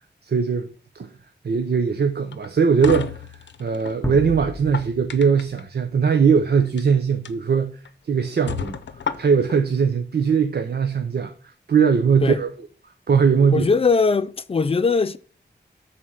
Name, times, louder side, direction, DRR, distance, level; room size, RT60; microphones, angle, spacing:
voice 1, 0.2-0.7 0.9-1.1 1.4-7.8 8.0-8.8 9.2-11.3 11.7-12.5 13.1-13.7, right 6 dB, 60° right, 0.7 m, -20 dB
sound 1, 2.3-4.0 4.5-5.6 6.6-6.8 7.2-7.3 7.8-7.9 8.5-9.6, left 7 dB, 85° left, 0.6 m, -31 dB
sound 2, 4.0-6.5, left 2 dB, 10° left, 0.9 m, -34 dB
voice 2, 13.5-15.2, left 4 dB, 30° left, 0.4 m, -20 dB
7.4 x 4.2 x 6.3 m
wide cardioid pair, 105°, 18 cm